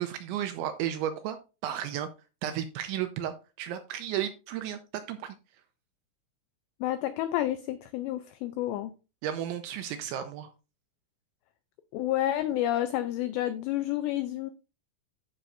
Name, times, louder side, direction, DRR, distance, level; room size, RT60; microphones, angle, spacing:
voice 1, 0.0-1.4 1.6-2.1 2.4-5.3 9.2-10.5, right 10 dB, 80° right, 2.8 m, -33 dB
voice 2, 6.8-8.9 11.9-14.5, left 13 dB, 90° left, 2.5 m, -30 dB
14.5 x 5.9 x 2.6 m
omnidirectional pair, 5.7 m